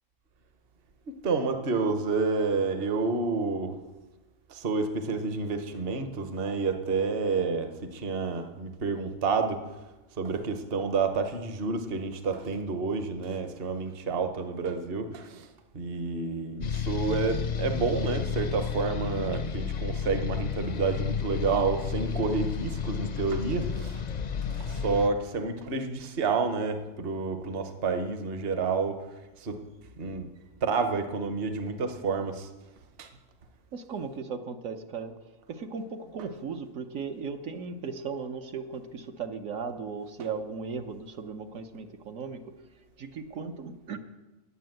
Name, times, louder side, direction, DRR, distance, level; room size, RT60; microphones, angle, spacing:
voice 1, 1.2-3.7 4.5-9.6 10.2-15.5 15.7-23.9 24.7-29.0 29.4-29.6 30.0-30.3 30.6-32.5 33.0-33.1 40.2-40.3, right 4 dB, 50° right, 8 dB, 1.1 m, -29 dB
sound 1, 16.6-25.1, left 7 dB, 50° left, 0.5 m, -32 dB
voice 2, 33.7-35.1 35.5-42.5 43.0-44.0, right 5 dB, 70° right, 5 dB, 1.2 m, -37 dB
9.7 x 9.3 x 7.7 m, 1.1 s
omnidirectional pair, 1.4 m